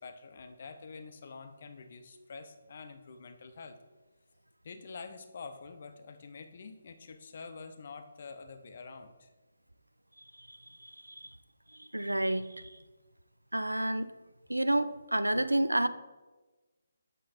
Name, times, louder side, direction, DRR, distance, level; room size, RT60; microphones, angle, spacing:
voice 1, 0.0-3.8 4.6-9.3, left 4 dB, 45° left, 8 dB, 0.7 m, -47 dB
voice 2, 11.8-12.7 13.5-14.1 14.5-15.9, right 1 dB, 85° right, 13 dB, 0.4 m, -29 dB
7.7 x 5.3 x 4.2 m, 1.2 s
figure-of-eight pair, 145°, 0 cm